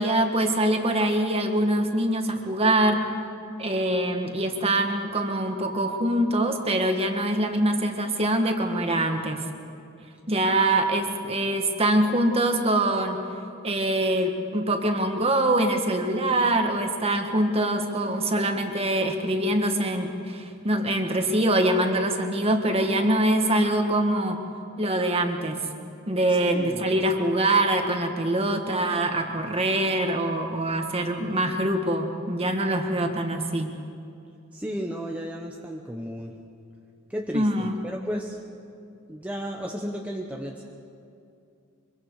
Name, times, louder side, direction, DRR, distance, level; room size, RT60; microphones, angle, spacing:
voice 1, 0.0-3.0 3.6-9.4 10.3-13.2 13.6-24.4 24.8-25.6 26.1-33.7 37.3-37.8, right 1 dB, 30° right, 4 dB, 1.7 m, -24 dB
voice 2, 26.5-27.0 34.5-36.3 37.1-38.4 39.1-40.6, equal, 5° right, -1 dB, 1.0 m, -33 dB
24.5 x 23.5 x 4.8 m, 2.5 s
head